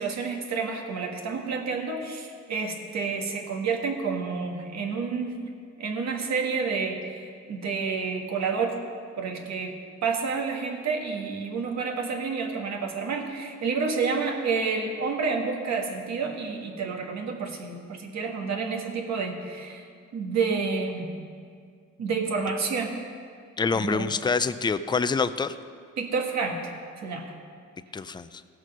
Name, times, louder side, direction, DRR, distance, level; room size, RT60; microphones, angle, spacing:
voice 1, 0.0-5.4 5.8-8.8 9.2-9.8 10.0-19.8 20.1-21.1 22.0-22.9 23.7-24.1 26.0-26.7 27.0-27.3, right 5 dB, 60° right, 2 dB, 1.6 m, -29 dB
voice 2, 23.6-25.6 27.9-28.4, left 4 dB, 15° left, 12 dB, 0.4 m, -26 dB
16.5 x 6.4 x 5.4 m, 2.1 s
cardioid pair, 90°, 30 cm